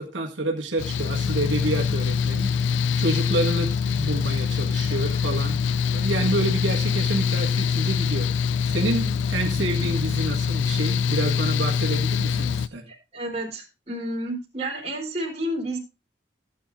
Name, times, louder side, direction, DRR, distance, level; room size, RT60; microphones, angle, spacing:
voice 1, 0.0-2.5 3.0-5.6 5.9-8.3 8.7-12.9, right 2 dB, 90° right, -1 dB, 1.8 m, -28 dB
Mechanical fan, 0.8-12.7, left 6 dB, 85° left, 0.4 m, -24 dB
voice 2, 9.6-9.9 12.9-15.8, right 1 dB, 35° right, 0 dB, 3.4 m, -31 dB
15.0 x 8.5 x 2.5 m, 0.29 s
head